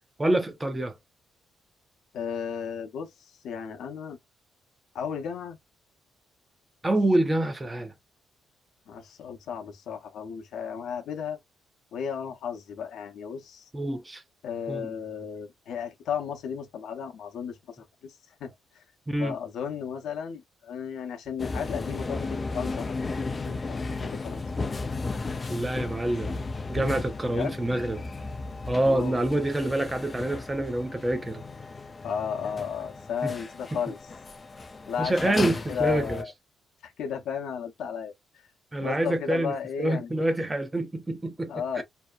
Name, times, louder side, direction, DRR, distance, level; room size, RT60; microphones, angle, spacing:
voice 1, 0.2-0.9 6.8-7.9 13.7-14.2 14.7-14.9 19.1-19.4 25.5-26.4 26.7-28.0 28.7-31.4 33.2-33.3 33.7-33.8 35.0-36.2 38.7-41.8, right 1 dB, 15° right, 0.6 m, -27 dB
voice 2, 2.1-3.1 3.4-4.2 4.9-5.6 8.9-11.4 11.9-13.7 14.4-18.1 18.4-18.8 19.2-24.4 27.3-27.6 28.8-29.4 32.0-34.0 34.9-36.3 36.8-38.1 38.8-40.1 41.5-41.8, left 7 dB, 75° left, 0.7 m, -34 dB
sound 1, 21.4-36.2, left 3 dB, 30° left, 0.3 m, -35 dB
2.7 x 2.0 x 2.3 m
cardioid pair, 90°, 0 cm